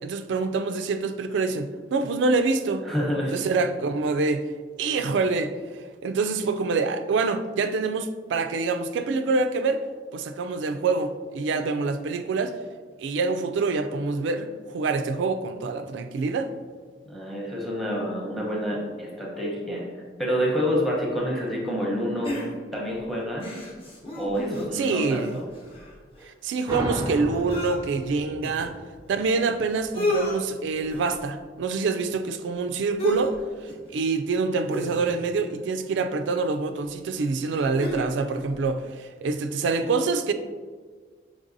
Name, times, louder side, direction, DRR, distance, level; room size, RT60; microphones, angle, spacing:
voice 1, 0.0-2.8 3.3-4.5 4.8-5.5 6.0-9.8 10.1-12.5 13.0-16.5 24.7-25.4 26.3-28.8 29.1-33.3 33.6-40.3, right 4 dB, 85° right, 0.3 m, -26 dB
voice 2, 2.8-3.4 17.1-19.8 20.2-22.4 22.7-23.6 24.1-25.4, equal, ahead, 0.8 m, -28 dB
sound 1, 22.2-22.9 23.4-24.8 25.2-25.3 25.5-27.8 28.4-28.5 29.4-29.5 29.7-30.4 30.9-31.2 33.0-33.4 33.7-33.9 34.7-35.4 36.4-36.5 37.1-38.1 38.5-38.6, left 1 dB, 30° left, 0.8 m, -32 dB
sound 2, 26.7-30.0, right 1 dB, 20° right, 0.4 m, -34 dB
5.2 x 3.2 x 2.6 m
head